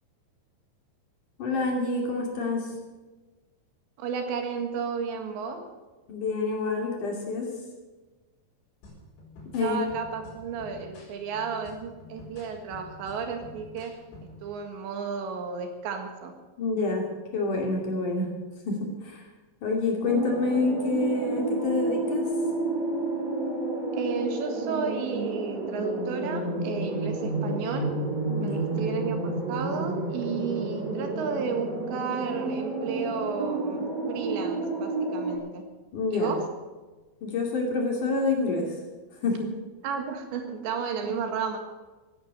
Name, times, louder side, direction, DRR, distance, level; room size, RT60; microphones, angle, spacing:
voice 1, 1.4-2.7 6.1-7.5 9.5-9.8 16.6-18.3 18.7-19.3 19.6-22.2 28.3-28.6 35.9-36.3 37.2-38.7 39.2-39.5, left 3 dB, 50° left, 0 dB, 3.7 m, -27 dB
voice 2, 4.0-5.6 9.6-13.9 14.4-16.3 24.0-27.9 28.4-35.6 36.1-36.5 39.8-41.6, right 6 dB, 75° right, 5 dB, 4.0 m, -33 dB
sound 1, 8.8-14.5, left 1 dB, 85° left, 7.1 m, -48 dB
sound 2, 20.0-35.4, right 2 dB, 10° right, 3.3 m, -30 dB
17.0 x 10.5 x 8.1 m, 1.2 s
omnidirectional pair, 5.3 m